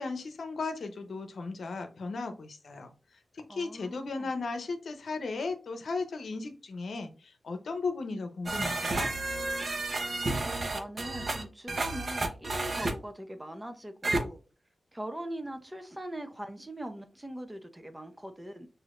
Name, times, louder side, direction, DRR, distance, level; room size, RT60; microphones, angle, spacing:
voice 1, 0.0-2.9 3.3-9.1, left 3 dB, 75° left, 0.7 m, -36 dB
voice 2, 3.5-4.3 10.4-14.4 14.9-18.7, right 1 dB, 15° right, 0.8 m, -41 dB
sound 1, 8.5-12.9 14.0-14.2, right 2 dB, 55° right, 0.9 m, -31 dB
6.1 x 2.7 x 2.5 m
cardioid pair, 60°, 0 cm